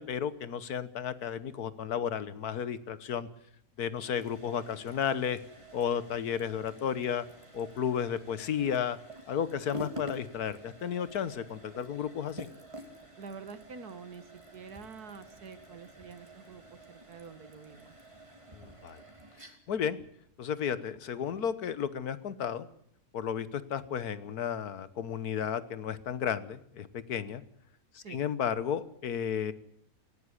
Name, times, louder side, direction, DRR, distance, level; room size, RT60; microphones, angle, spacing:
voice 1, 0.0-3.3 3.8-5.4 5.7-7.3 7.5-9.0 9.3-12.5 18.6-19.0 19.7-20.0 20.4-22.7 23.1-27.4 27.9-29.5, left 8 dB, 80° left, 15 dB, 1.6 m, -33 dB
sound 1, 3.9-21.6, right 1 dB, 20° right, 2.8 m, -49 dB
voice 2, 13.2-18.0 28.0-28.2, right 5 dB, 80° right, 11 dB, 2.2 m, -47 dB
18.5 x 16.5 x 9.8 m, 0.68 s
omnidirectional pair, 1.6 m